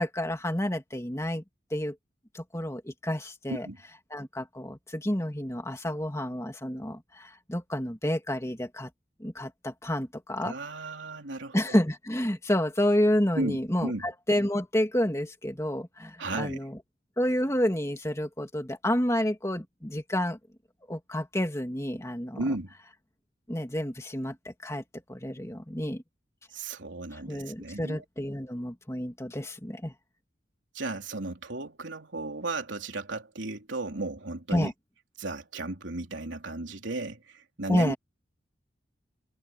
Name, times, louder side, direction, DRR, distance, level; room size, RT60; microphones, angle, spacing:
voice 1, 0.0-1.4 1.7-2.0 2.3-3.7 4.1-8.9 9.2-10.5 11.5-16.8 17.2-20.4 20.9-22.4 23.5-24.8 25.1-26.0 27.2-29.9 34.5-34.7 37.7-38.0, left 1 dB, 15° left, 2.6 m, -29 dB
voice 2, 10.4-11.6 13.3-14.1 16.2-16.6 22.4-22.7 26.5-28.0 30.7-34.7 35.2-38.0, right 2 dB, 85° right, 3.4 m, -34 dB
head